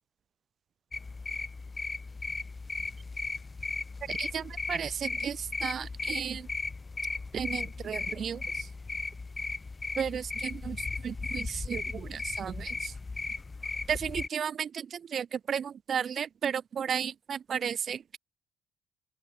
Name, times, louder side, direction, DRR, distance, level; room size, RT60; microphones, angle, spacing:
sound 1, 0.9-14.3, left 3 dB, 30° left, 6.7 m, -36 dB
voice 1, 4.1-4.4 4.7-6.5 7.3-8.4 10.0-10.8 11.0-12.9 13.9-18.2, right 7 dB, 55° right, 0.8 m, -34 dB
open air
supercardioid pair, 60°, 0 cm